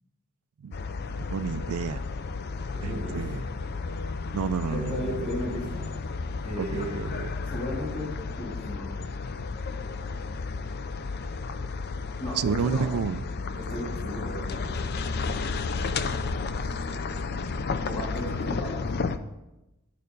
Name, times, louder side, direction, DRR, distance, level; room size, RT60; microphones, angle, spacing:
sound 1, 0.7-19.2, left 4 dB, 50° left, 0.5 m, -32 dB
voice 1, 1.1-2.0 2.8-3.4 4.3-5.2 6.6-7.3 12.3-13.2, right 6 dB, 85° right, 14 dB, 0.4 m, -30 dB
voice 2, 2.7-3.2 4.7-5.8 6.4-7.0 7.4-8.9 12.2-12.9 13.6-14.9 17.8-18.9, left 1 dB, 25° left, -3 dB, 2.9 m, -35 dB
10.0 x 6.7 x 5.3 m, 0.97 s
head